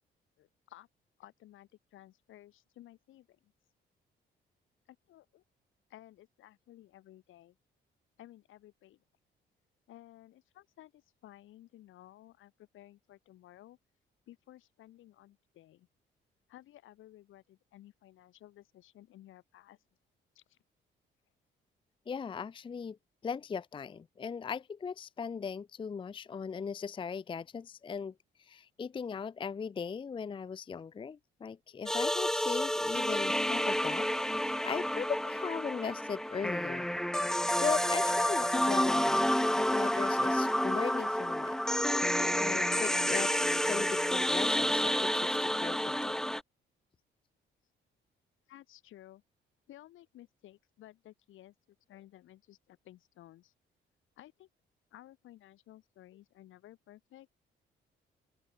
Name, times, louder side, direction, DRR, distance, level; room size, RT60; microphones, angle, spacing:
voice 1, 0.4-0.9 1.2-3.5 4.9-5.4 5.9-7.6 8.2-9.0 9.9-13.8 14.3-15.9 16.5-19.8 20.3-20.6 48.5-49.2 49.7-53.5 54.2-54.5 54.9-57.3, left 14 dB, 85° left, 6.2 m, -56 dB
voice 2, 22.1-23.0 23.2-28.1 28.5-36.9 37.6-39.2 39.6-41.5 42.4-46.2, left 6 dB, 25° left, 0.4 m, -38 dB
sound 1, 31.9-46.4, equal, 5° left, 0.9 m, -29 dB
open air
cardioid pair, 90°, 20 cm